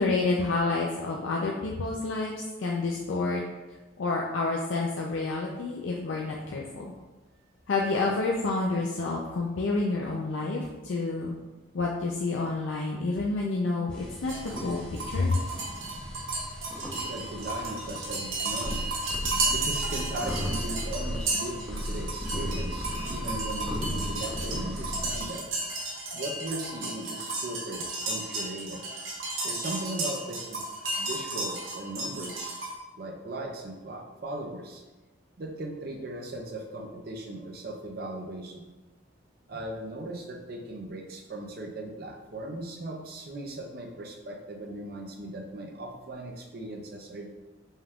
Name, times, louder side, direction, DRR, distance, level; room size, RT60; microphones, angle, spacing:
voice 1, 0.0-3.4 4.0-6.8 7.7-11.4 11.7-14.3 14.6-14.8 15.1-15.4, left 3 dB, 75° left, -1 dB, 0.4 m, -29 dB
sound 1, 13.9-25.2, equal, 5° left, 0.6 m, -36 dB
sound 2, 14.3-32.7, right 2 dB, 85° right, 0.9 m, -33 dB
voice 2, 17.0-18.8 19.5-25.4 26.1-28.9 29.4-30.6 31.0-32.6 32.9-34.8 35.4-38.7 39.5-47.3, right 1 dB, 50° right, 2 dB, 0.6 m, -38 dB
5.4 x 2.3 x 3.5 m, 1.1 s
head